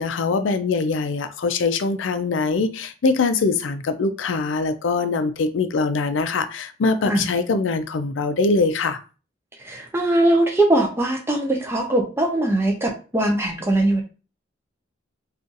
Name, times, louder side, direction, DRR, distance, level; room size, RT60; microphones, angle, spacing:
voice 1, 0.0-9.0, left 4 dB, 80° left, 10 dB, 0.4 m, -23 dB
voice 2, 9.6-14.0, right 1 dB, 15° right, 1 dB, 0.6 m, -21 dB
2.5 x 2.4 x 3.9 m, 0.35 s
head